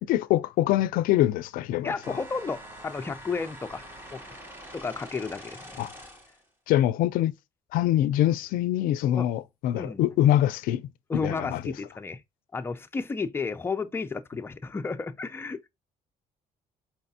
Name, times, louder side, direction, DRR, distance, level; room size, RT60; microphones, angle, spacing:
voice 1, 0.0-2.2 5.8-5.9 6.7-7.3 7.7-10.8 11.2-11.6, left 13 dB, 90° left, 0.4 m, -24 dB
voice 2, 1.8-4.2 4.7-5.8 9.2-9.3 9.7-10.0 11.1-12.2 12.5-15.6, left 4 dB, 15° left, 0.4 m, -32 dB
sound 1, 2.0-6.4, equal, 15° right, 1.7 m, -45 dB
4.8 x 3.3 x 2.7 m
cardioid pair, 110°, 14 cm